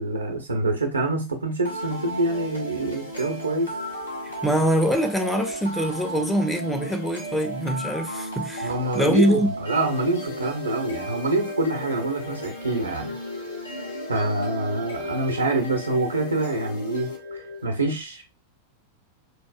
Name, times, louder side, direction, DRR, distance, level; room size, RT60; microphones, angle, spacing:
voice 1, 0.0-3.7 8.6-13.1 14.1-18.2, right 2 dB, 80° right, 0.9 m, -26 dB
sound 1, 1.7-17.6, equal, 85° left, 1.1 m, -34 dB
voice 2, 4.4-9.5, equal, 5° left, 0.5 m, -24 dB
4.5 x 2.6 x 2.3 m
figure-of-eight pair, 90°, 0 cm